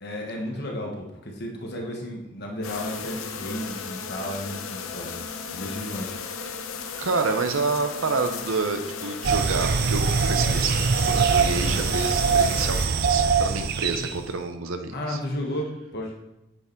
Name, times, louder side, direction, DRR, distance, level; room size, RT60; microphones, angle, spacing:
voice 1, 0.0-5.1 5.5-6.2 11.5-11.8 14.9-15.7 15.9-16.2, left 1 dB, 50° left, 0 dB, 1.3 m, -33 dB
sound 1, 2.6-12.9, left 5 dB, 75° left, 0.8 m, -35 dB
voice 2, 7.0-10.8 11.0-15.2, right 4 dB, 70° right, 7 dB, 0.8 m, -28 dB
sound 2, 9.2-14.2, right 5 dB, 45° right, 0.4 m, -23 dB
7.9 x 5.9 x 4.6 m, 0.88 s
head